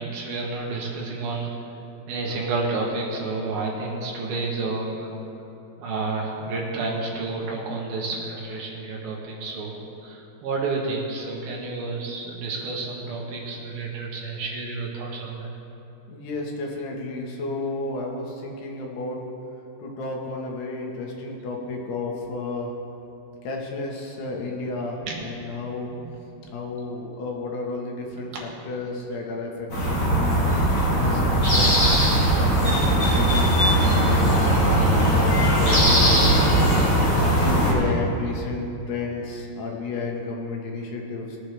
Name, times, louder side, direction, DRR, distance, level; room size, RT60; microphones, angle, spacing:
voice 1, 0.0-1.6 2.1-5.1 5.8-15.5 25.1-25.2 29.9-30.0 34.8-35.1 36.7-36.9 37.1-37.3, right 3 dB, 70° right, -3 dB, 3.4 m, -30 dB
voice 2, 16.1-19.2 19.8-22.7 23.4-25.9 26.5-30.4 31.0-36.9 37.4-41.4, left 3 dB, 75° left, -1 dB, 3.4 m, -32 dB
sound 1, 29.7-37.7, right 1 dB, 30° left, 3.1 m, -19 dB
21.5 x 8.7 x 3.4 m, 2.8 s
omnidirectional pair, 4.7 m